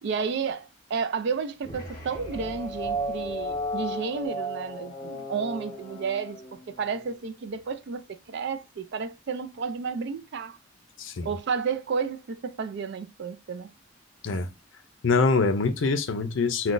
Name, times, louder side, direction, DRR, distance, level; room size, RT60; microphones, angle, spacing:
voice 1, 0.0-6.4 6.8-10.6 11.2-13.7, right 5 dB, 60° right, 0.4 m, -31 dB
sound 1, 1.6-7.2, right 1 dB, 20° left, 0.8 m, -34 dB
voice 2, 15.0-16.7, left 4 dB, 70° left, 0.5 m, -24 dB
3.8 x 2.2 x 2.5 m
head